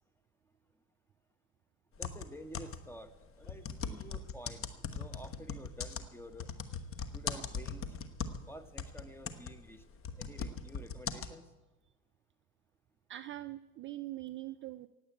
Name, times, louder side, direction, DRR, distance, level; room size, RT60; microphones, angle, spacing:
sound 1, 1.9-3.0 3.4-8.5 8.8-11.3, left 6 dB, 30° left, 1.2 m, -39 dB
voice 1, 2.0-6.5 7.1-7.9 8.5-9.8 10.1-11.4, left 1 dB, 5° left, 9 dB, 1.2 m, -50 dB
voice 2, 13.1-14.9, right 15 dB, 30° right, 11 dB, 0.5 m, -43 dB
17.5 x 8.1 x 8.6 m, 1.1 s
hypercardioid pair, 90°, 42 cm